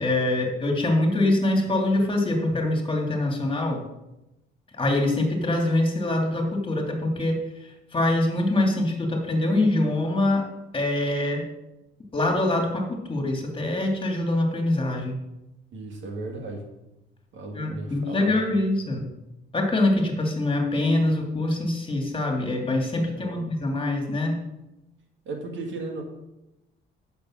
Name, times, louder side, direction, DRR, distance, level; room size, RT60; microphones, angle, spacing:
voice 1, 0.0-3.8 4.8-7.4 7.9-10.5 10.7-11.4 12.1-15.2 17.5-19.1 19.5-24.3, left 2 dB, 25° left, 1 dB, 2.6 m, -24 dB
voice 2, 15.7-16.7 17.3-18.6 23.1-23.6 25.3-26.0, right 2 dB, 70° right, 2 dB, 2.2 m, -36 dB
8.7 x 6.8 x 6.4 m, 0.94 s
cardioid pair, 90°, 20 cm